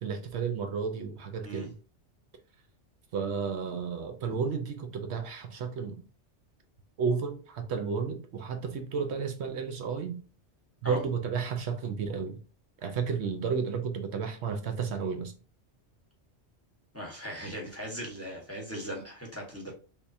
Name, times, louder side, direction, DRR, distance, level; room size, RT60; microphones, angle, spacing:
voice 1, 0.0-1.7 3.1-6.0 7.0-10.2 10.8-12.4 12.8-15.3, right 6 dB, 70° right, 0.9 m, -32 dB
voice 2, 16.9-19.7, equal, 15° left, 0.8 m, -38 dB
3.6 x 2.9 x 2.6 m
omnidirectional pair, 1.2 m